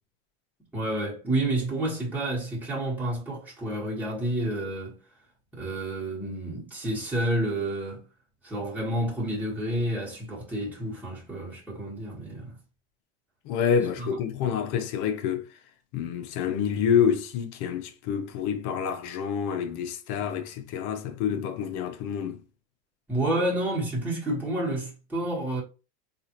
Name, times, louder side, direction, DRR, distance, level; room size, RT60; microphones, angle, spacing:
voice 1, 0.7-5.0 5.5-8.0 8.4-12.6 14.0-14.1 23.1-25.6, right 1 dB, 5° right, 1.4 m, -29 dB
voice 2, 13.4-15.5 15.9-22.4, left 7 dB, 55° left, 0.8 m, -27 dB
3.8 x 2.5 x 2.9 m
supercardioid pair, 125°, 35 cm